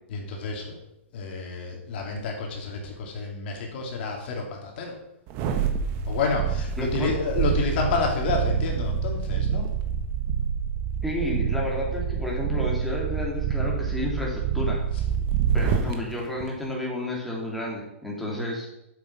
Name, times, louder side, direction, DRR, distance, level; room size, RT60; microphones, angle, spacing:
voice 1, 0.1-0.8 1.1-5.0 6.1-9.7 15.7-16.0, left 3 dB, 50° left, 1 dB, 2.6 m, -29 dB
sound 1, 5.3-15.9 16.4-16.5, right 7 dB, 35° right, 1.2 m, -27 dB
voice 2, 6.8-7.1 11.0-14.8 15.5-18.7, left 1 dB, ahead, -4 dB, 2.6 m, -31 dB
7.7 x 7.5 x 5.9 m, 0.81 s
hypercardioid pair, 135°, 7 cm